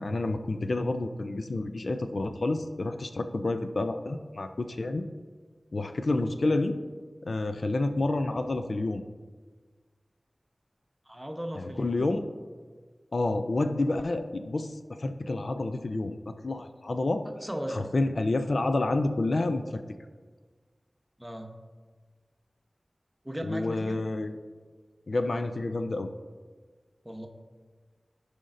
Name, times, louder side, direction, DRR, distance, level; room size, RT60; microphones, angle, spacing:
voice 1, 0.0-5.0 5.7-6.8 7.2-9.0 11.6-12.3 13.1-17.2 17.7-19.8 23.4-24.3 25.1-26.1, left 2 dB, 70° left, 8 dB, 0.4 m, -29 dB
voice 2, 11.1-12.1 17.4-17.9 21.2-21.5 23.2-24.0 27.0-27.3, equal, 10° right, 3 dB, 0.9 m, -36 dB
14.5 x 5.1 x 2.6 m, 1.5 s
wide cardioid pair, 75°, 0 cm